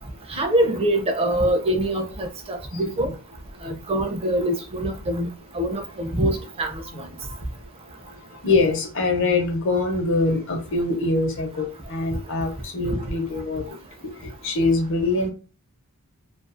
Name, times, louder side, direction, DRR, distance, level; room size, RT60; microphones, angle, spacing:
voice 1, 0.3-3.1 3.6-5.3 5.5-6.7 7.0-7.1, right 1 dB, 25° right, 0.4 m, -24 dB
voice 2, 8.4-13.6 14.0-15.3, left 3 dB, 60° left, 0.8 m, -24 dB
2.4 x 2.3 x 2.5 m
head